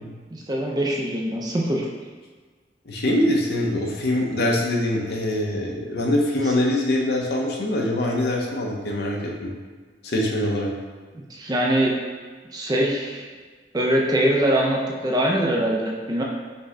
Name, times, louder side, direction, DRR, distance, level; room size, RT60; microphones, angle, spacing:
voice 1, 0.3-1.8 11.1-11.9 12.5-13.2 13.7-16.2, right 1 dB, 20° right, -2 dB, 0.5 m, -23 dB
voice 2, 2.9-9.5 10.0-10.7, left 1 dB, 60° left, -1 dB, 0.7 m, -23 dB
5.3 x 2.2 x 3.7 m, 1.4 s
head